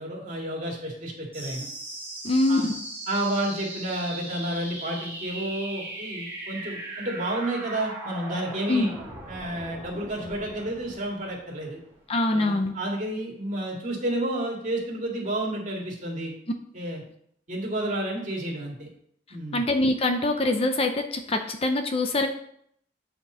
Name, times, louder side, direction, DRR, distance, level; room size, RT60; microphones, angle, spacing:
voice 1, 0.0-1.7 2.5-2.7 3.1-8.9 9.3-11.8 12.3-16.3 16.7-17.0 17.5-18.9 19.3-19.6, right 1 dB, 40° right, -3 dB, 2.5 m, -31 dB
sound 1, 1.3-12.3, right 1 dB, 10° right, 1.9 m, -39 dB
voice 2, 2.2-2.6 8.7-8.9 12.1-12.7 19.5-22.3, left 2 dB, 30° left, 6 dB, 0.6 m, -24 dB
8.7 x 4.4 x 5.5 m, 0.69 s
head